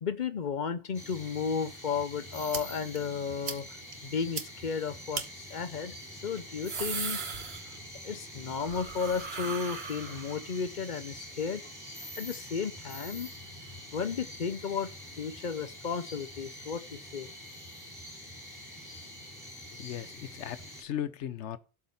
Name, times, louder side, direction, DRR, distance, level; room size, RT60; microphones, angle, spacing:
voice 1, 0.0-3.8 4.0-7.2 8.0-11.7 12.2-13.3 13.9-14.9 15.2-17.3, left 6 dB, 50° left, 0.7 m, -34 dB
sound 1, 0.9-20.8, equal, 15° left, 4.0 m, -46 dB
sound 2, 2.5-2.6 3.0-3.1 3.5-3.6 3.9-4.0 4.4-4.5 5.1-5.3 6.4-8.0 8.3-10.5, right 5 dB, 60° right, 1.3 m, -37 dB
voice 2, 19.8-21.6, left 10 dB, 75° left, 1.0 m, -37 dB
12.0 x 4.8 x 7.0 m
omnidirectional pair, 1.2 m